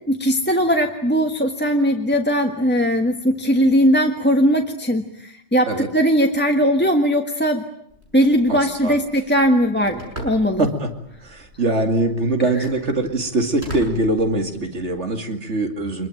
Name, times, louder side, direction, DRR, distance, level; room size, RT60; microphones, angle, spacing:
voice 1, 0.1-7.6 8.1-10.7, equal, 10° left, 3 dB, 1.5 m, -19 dB
Telephone, 7.9-14.9, right 1 dB, 65° right, 6.8 m, -40 dB
voice 2, 8.5-9.0 10.6-10.9 11.2-16.1, right 2 dB, 85° right, 5 dB, 2.8 m, -22 dB
26.0 x 22.5 x 9.1 m, 0.73 s
omnidirectional pair, 1.2 m